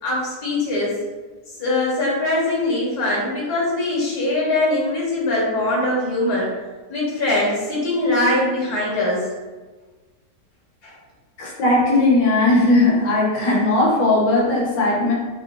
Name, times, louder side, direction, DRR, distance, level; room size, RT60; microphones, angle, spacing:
voice 1, 0.0-0.9 1.6-6.5 6.9-9.3 10.8-10.9, left 2 dB, 65° left, -5 dB, 1.8 m, -22 dB
voice 2, 11.4-15.1, left 2 dB, 90° left, -4 dB, 1.6 m, -17 dB
4.2 x 2.4 x 3.0 m, 1.3 s
omnidirectional pair, 1.8 m